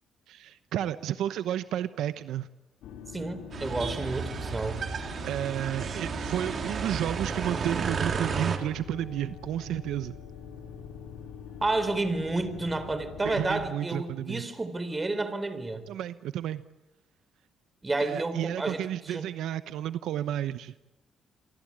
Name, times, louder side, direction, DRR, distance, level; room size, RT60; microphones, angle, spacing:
voice 1, 0.3-2.5 5.2-10.2 13.2-14.4 15.9-16.6 18.0-20.7, right 11 dB, 85° right, 12 dB, 0.9 m, -32 dB
sound 1, 2.8-13.7, left 8 dB, 85° left, 4.1 m, -45 dB
voice 2, 3.1-4.9 11.6-15.8 17.8-19.2, right 2 dB, 20° right, 11 dB, 4.0 m, -30 dB
sound 2, 3.5-8.6, right 5 dB, 50° right, 3.6 m, -32 dB
28.0 x 23.0 x 8.8 m, 0.98 s
cardioid pair, 90°, 0 cm